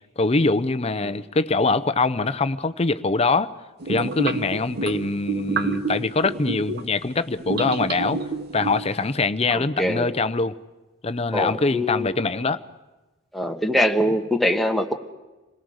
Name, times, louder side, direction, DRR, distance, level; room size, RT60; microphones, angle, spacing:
voice 1, 0.2-3.5 3.9-8.2 8.5-10.6 11.0-12.6, left 3 dB, 30° left, 13 dB, 0.7 m, -23 dB
sound 1, 3.8-6.9 7.4-9.0, right 4 dB, 55° right, 1.0 m, -29 dB
voice 2, 9.5-10.1 11.3-12.1 13.3-14.9, left 1 dB, ahead, 3 dB, 1.4 m, -23 dB
27.0 x 18.0 x 6.4 m, 1.2 s
head